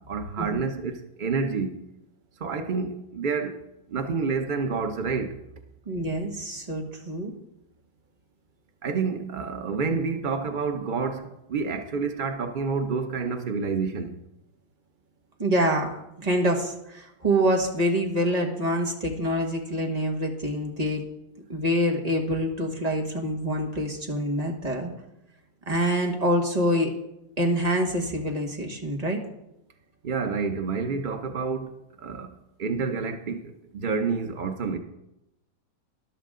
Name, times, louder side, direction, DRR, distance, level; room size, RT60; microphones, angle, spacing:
voice 1, 0.1-1.8 2.4-3.6 3.9-5.3 8.8-14.2 30.0-31.7 32.0-32.3 32.6-33.4 33.8-34.8, right 5 dB, 80° right, 6 dB, 0.4 m, -28 dB
voice 2, 5.9-7.3 15.4-21.0 21.5-24.9 25.7-26.9 27.4-29.2, equal, 25° right, 1 dB, 1.5 m, -26 dB
13.0 x 11.5 x 3.7 m, 0.86 s
omnidirectional pair, 2.0 m